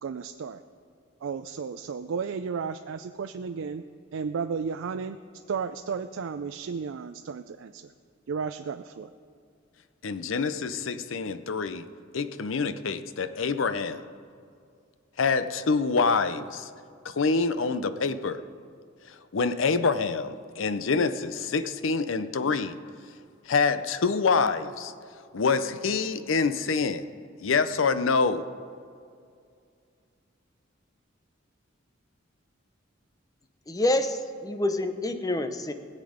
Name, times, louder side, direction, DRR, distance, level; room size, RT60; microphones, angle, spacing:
voice 1, 0.0-0.6 1.2-3.8 4.1-5.2 5.5-7.9 8.3-9.1, right 5 dB, 80° right, 9 dB, 0.4 m, -33 dB
voice 2, 10.0-11.9 12.1-14.0 15.2-16.7 17.0-18.4 19.1-22.8 23.5-24.9 25.3-27.1 27.4-28.5, left 4 dB, 80° left, 12 dB, 0.6 m, -26 dB
voice 3, 33.7-35.7, left 1 dB, 20° left, 9 dB, 0.7 m, -27 dB
20.5 x 7.5 x 5.1 m, 2.3 s
head